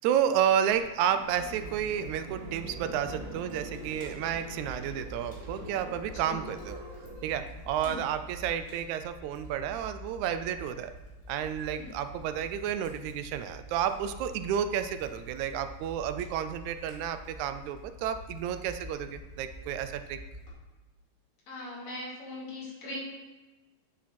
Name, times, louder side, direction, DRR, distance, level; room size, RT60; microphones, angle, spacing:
voice 1, 0.0-6.8 7.2-10.9 11.3-20.2, right 9 dB, 80° right, 10 dB, 1.9 m, -31 dB
sound 1, 0.7-7.8, right 1 dB, 50° right, 1.6 m, -45 dB
Fire, 1.2-20.5, right 1 dB, 30° left, 2.7 m, -46 dB
voice 2, 6.1-6.5 7.8-8.0 11.8-11.9 21.5-23.1, left 2 dB, 70° left, -5 dB, 3.8 m, -40 dB
9.6 x 7.5 x 4.3 m, 1.2 s
omnidirectional pair, 3.4 m